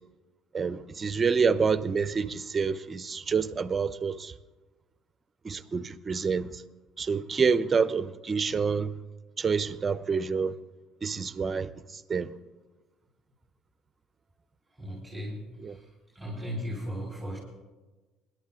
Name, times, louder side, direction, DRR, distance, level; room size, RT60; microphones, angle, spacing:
voice 1, 0.5-4.3 5.4-6.6 7.0-8.9 9.4-10.5 11.0-12.3 15.6-15.8, right 5 dB, 30° right, 0.7 m, -28 dB
voice 2, 14.8-15.4 16.1-17.4, equal, ahead, 4.3 m, -36 dB
21.0 x 12.0 x 3.7 m
supercardioid pair, 95°, 0 cm